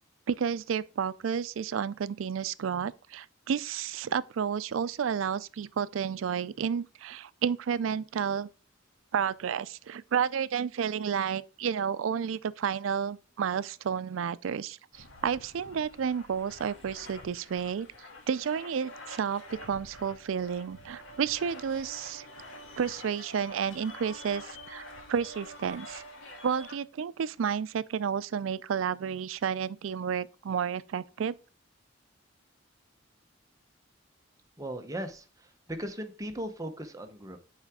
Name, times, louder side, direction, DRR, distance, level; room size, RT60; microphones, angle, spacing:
voice 1, 0.3-8.5 9.1-17.9 18.3-22.3 22.8-26.0 26.4-31.3, right 7 dB, 90° right, 0.4 m, -31 dB
sound 1, 14.9-26.8, left 1 dB, 90° left, 1.7 m, -47 dB
voice 2, 34.6-37.4, right 1 dB, 15° right, 0.9 m, -38 dB
7.3 x 4.9 x 3.5 m
head